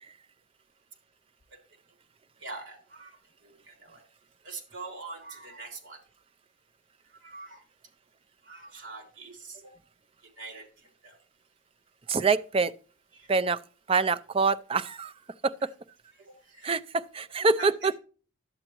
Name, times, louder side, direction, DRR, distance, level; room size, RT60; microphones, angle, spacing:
voice 1, 2.4-4.0 4.4-6.0 7.2-7.6 8.4-9.8 10.4-11.2 13.1-13.3 15.6-15.7 16.1-16.8 17.4-17.7, right 3 dB, 60° right, 3.5 m, -44 dB
voice 2, 12.1-12.7 13.3-13.6 13.9-15.1 15.4-15.7 16.6-17.9, right 4 dB, 25° right, 0.4 m, -25 dB
11.5 x 8.0 x 3.0 m
head